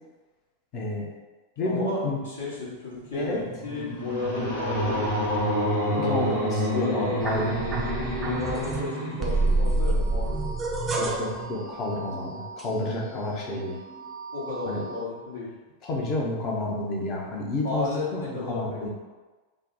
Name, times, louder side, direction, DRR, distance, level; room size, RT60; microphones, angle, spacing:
voice 1, 0.7-1.1 1.6-2.2 3.1-3.4 6.0-7.7 11.0-13.8 14.7-14.8 15.8-18.9, left 2 dB, 35° left, -2 dB, 0.8 m, -30 dB
voice 2, 1.6-3.3 3.6-5.2 5.5-6.0 6.4-7.3 8.2-10.5 14.3-15.5 17.6-18.9, left 3 dB, 65° left, -5 dB, 1.1 m, -33 dB
sound 1, 3.0-10.4, equal, 85° left, 1.2 m, -29 dB
sound 2, 7.2-8.8 9.2-13.2 13.6-15.0, right 2 dB, 20° right, 0.5 m, -29 dB
3.4 x 2.2 x 4.0 m, 1.3 s
figure-of-eight pair, 90°, 0 cm